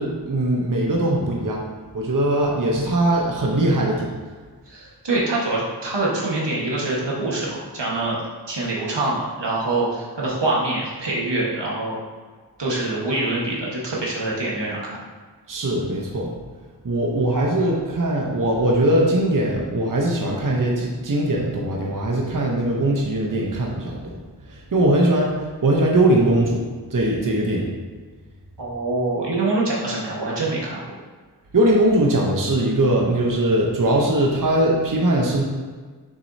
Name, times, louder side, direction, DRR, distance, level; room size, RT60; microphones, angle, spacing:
voice 1, 0.0-1.6 1.9-4.1 15.5-16.3 16.8-24.2 24.5-25.4 25.6-26.6 26.9-27.7 31.5-35.4, right 1 dB, 50° right, -2 dB, 0.9 m, -20 dB
voice 2, 4.7-8.2 8.5-12.0 12.6-15.0 28.6-30.8, right 2 dB, 90° right, -5 dB, 1.5 m, -25 dB
6.4 x 6.2 x 2.7 m, 1.4 s
wide cardioid pair, 65°, 41 cm